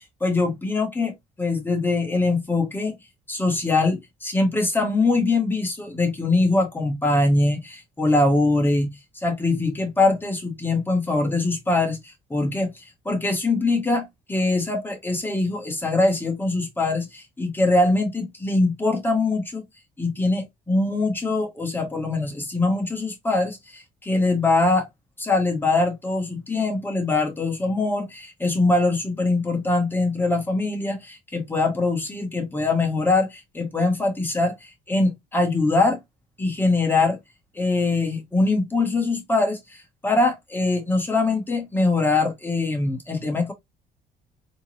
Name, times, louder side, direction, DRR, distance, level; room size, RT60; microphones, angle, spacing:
voice 1, 0.2-1.1 1.4-3.0 3.3-8.9 9.2-19.6 20.0-24.9 25.2-36.0 36.4-37.2 37.5-39.6 40.0-43.5, left 2 dB, 10° left, 1.4 m, -23 dB
3.5 x 3.1 x 2.9 m
cardioid pair, 110°, 17 cm